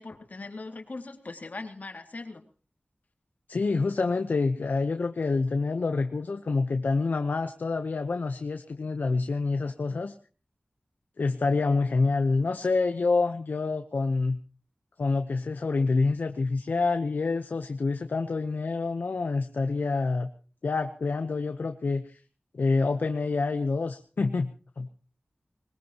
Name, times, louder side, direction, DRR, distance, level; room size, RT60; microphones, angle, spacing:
voice 1, 0.0-2.4, left 3 dB, 65° left, 5 dB, 2.4 m, -40 dB
voice 2, 3.5-10.1 11.2-14.4 15.0-20.3 20.6-22.2 22.5-24.5 24.8-24.9, left 3 dB, 85° left, 7 dB, 0.9 m, -27 dB
21.5 x 20.5 x 3.0 m, 0.38 s
wide cardioid pair, 50°, 3 cm